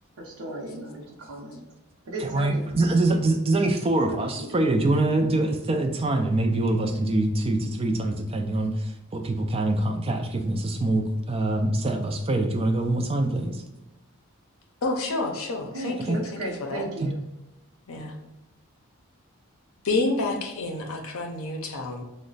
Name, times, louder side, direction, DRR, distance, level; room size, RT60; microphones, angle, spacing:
voice 1, 0.2-1.6 2.1-2.6 4.1-4.5 15.7-17.1, right 1 dB, 75° right, -2 dB, 0.7 m, -35 dB
voice 2, 2.2-13.6 16.1-16.2 17.0-17.1, right 2 dB, 25° right, 4 dB, 0.3 m, -24 dB
voice 3, 14.8-16.9 17.9-18.1 19.8-22.0, left 2 dB, 65° left, 3 dB, 0.6 m, -29 dB
3.1 x 2.1 x 3.8 m, 0.98 s
head